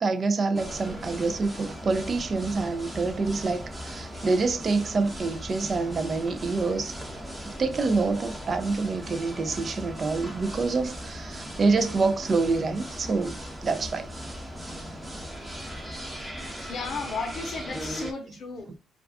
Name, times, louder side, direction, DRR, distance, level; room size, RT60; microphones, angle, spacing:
voice 1, 0.0-6.9 7.6-13.4 13.6-14.1, right 3 dB, 40° right, 0.3 m, -26 dB
sound 1, 0.5-18.1, equal, 15° right, 0.7 m, -38 dB
voice 2, 16.6-18.7, left 4 dB, 50° left, 0.7 m, -34 dB
2.3 x 2.3 x 3.4 m
cardioid pair, 90°, 0 cm